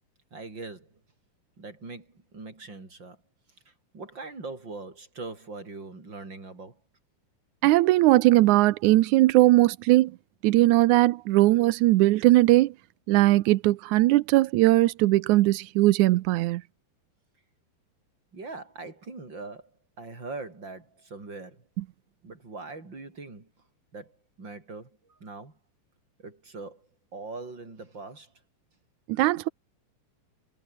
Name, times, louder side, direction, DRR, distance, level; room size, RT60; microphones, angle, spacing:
voice 1, 0.3-0.9 1.6-3.2 3.9-6.8 18.3-19.7 20.0-21.6 22.2-23.5 23.9-24.1 24.4-25.5 26.2-28.3, right 3 dB, 30° right, 6.0 m, -41 dB
voice 2, 7.6-10.1 10.4-12.7 13.1-16.6 29.2-29.5, right 17 dB, 80° right, 1.7 m, -20 dB
omnidirectional pair, 4.3 m